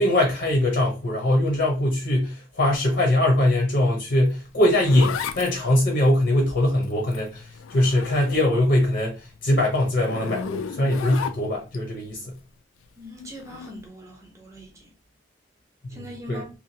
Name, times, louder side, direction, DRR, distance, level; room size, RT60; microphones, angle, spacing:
voice 1, 0.0-12.4 15.8-16.0 16.3-16.4, left 1 dB, 60° left, 0.8 m, -22 dB
Zipper (clothing), 4.3-8.8 9.1-11.8 13.4-13.7, left 7 dB, 80° left, 0.3 m, -34 dB
voice 2, 13.0-14.9 15.9-16.5, equal, 15° right, 0.7 m, -41 dB
2.9 x 2.3 x 2.7 m
head